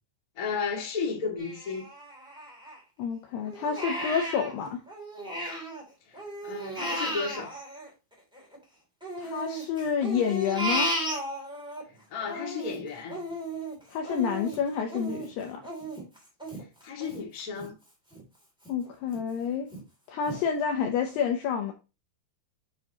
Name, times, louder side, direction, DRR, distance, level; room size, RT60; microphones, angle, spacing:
voice 1, 0.3-1.9 6.0-7.6 11.9-13.2 16.8-17.7, left 5 dB, 35° left, 1.3 m, -34 dB
Crying sobbing, 1.4-3.0 3.4-5.8 6.1-8.6 9.0-11.8 12.2-17.7 18.1-18.2 18.6-19.2 19.7-19.8 20.3-20.4, right 1 dB, ahead, 1.0 m, -35 dB
voice 2, 3.0-4.8 9.2-10.9 13.9-15.6 18.7-19.7 20.1-21.7, left 7 dB, 80° left, 2.4 m, -29 dB
8.6 x 4.8 x 2.9 m
omnidirectional pair, 5.5 m